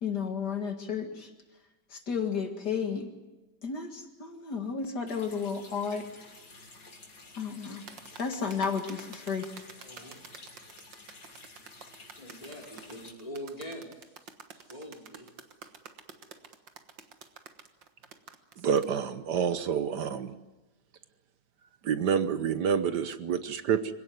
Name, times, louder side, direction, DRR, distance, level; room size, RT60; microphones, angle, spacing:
voice 1, 0.0-1.3 1.9-3.1 3.6-6.1 7.4-7.8 8.2-9.5, left 6 dB, 65° left, 5 dB, 2.6 m, -32 dB
Water tap faucet, 5.1-13.1, left 3 dB, 85° left, 4.0 m, -51 dB
sound 1, 7.9-18.9, right 6 dB, 90° right, 2.2 m, -49 dB
voice 2, 9.8-10.2 12.2-15.3, equal, 20° left, -1 dB, 4.7 m, -44 dB
voice 3, 18.6-20.3 21.8-23.9, right 7 dB, 70° right, 11 dB, 1.5 m, -28 dB
25.5 x 17.5 x 9.5 m, 1.1 s
omnidirectional pair, 1.9 m